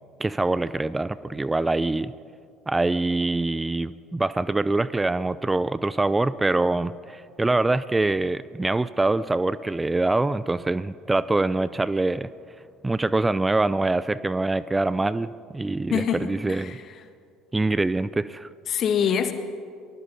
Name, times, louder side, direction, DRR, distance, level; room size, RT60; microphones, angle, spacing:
voice 1, 0.2-2.1 2.7-12.3 12.8-16.7 17.5-18.5, right 2 dB, 15° right, 17 dB, 0.5 m, -24 dB
voice 2, 15.9-16.9 18.7-19.3, left 8 dB, 45° left, 8 dB, 1.9 m, -25 dB
24.0 x 19.5 x 5.5 m, 2.3 s
figure-of-eight pair, 60°, 0 cm